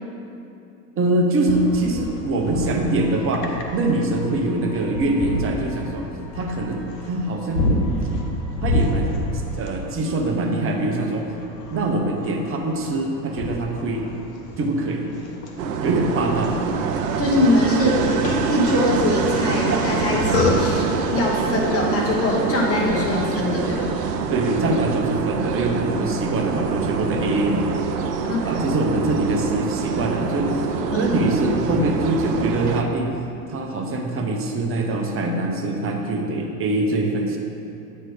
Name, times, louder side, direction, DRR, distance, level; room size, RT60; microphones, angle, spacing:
voice 1, 1.0-3.5 3.7-6.1 6.3-7.9 8.6-9.3 9.6-11.2 11.7-14.1 14.6-15.1 15.8-16.6 24.3-27.7 28.4-30.6 30.9-33.1 33.5-37.4, right 2 dB, 25° right, 1 dB, 0.9 m, -23 dB
sound 1, 1.5-21.0, left 1 dB, 70° left, 1.0 m, -29 dB
sound 2, 15.6-32.8, right 5 dB, 75° right, 0.7 m, -25 dB
voice 2, 17.2-18.1 18.5-20.8 21.1-23.9 28.2-28.5 30.9-31.1, left 1 dB, 30° left, -3 dB, 1.4 m, -22 dB
8.9 x 3.3 x 4.9 m, 2.8 s
hypercardioid pair, 95°, 48 cm